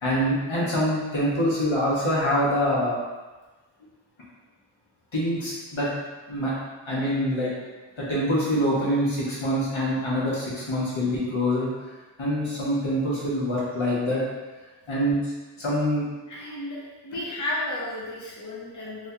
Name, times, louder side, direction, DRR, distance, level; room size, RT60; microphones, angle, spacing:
voice 1, 0.0-3.0 5.1-5.9 6.3-6.5 6.9-7.5 8.0-11.7 12.2-14.2 14.9-15.2 15.6-16.0, equal, 80° left, -7 dB, 1.3 m, -25 dB
voice 2, 16.3-19.1, left 1 dB, 40° left, -5 dB, 0.7 m, -33 dB
3.4 x 3.2 x 2.8 m, 1.2 s
wide cardioid pair, 80°, 46 cm